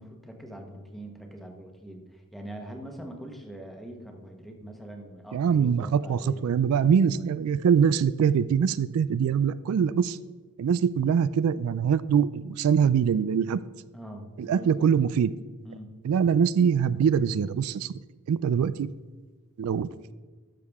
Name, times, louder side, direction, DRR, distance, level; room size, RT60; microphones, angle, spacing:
voice 1, 0.0-7.0 13.9-14.9 15.6-15.9, right 1 dB, ahead, 3 dB, 1.1 m, -43 dB
voice 2, 5.3-10.2 10.6-13.6 14.4-15.3 16.0-17.9 18.3-18.9 19.6-20.1, right 7 dB, 80° right, 16 dB, 0.3 m, -23 dB
12.5 x 6.6 x 3.5 m, 1.4 s
head